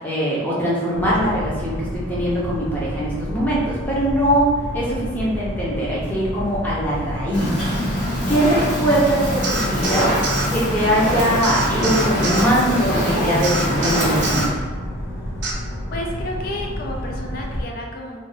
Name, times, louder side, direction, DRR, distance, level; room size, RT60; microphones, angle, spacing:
voice 1, 0.0-4.5 4.7-7.5 7.8-7.9 8.3-10.1 10.5-14.5, right 1 dB, 10° left, -7 dB, 0.7 m, -21 dB
sound 1, 0.9-17.6, equal, 75° left, 0.8 m, -30 dB
Fire, 7.3-14.4, equal, 35° left, 0.9 m, -23 dB
sound 2, 9.4-10.5 11.4-12.5 13.4-14.5 15.4-15.5, right 3 dB, 70° right, 0.5 m, -26 dB
voice 2, 15.9-18.2, left 1 dB, 50° left, 0 dB, 0.4 m, -31 dB
2.6 x 2.3 x 3.8 m, 1.4 s
head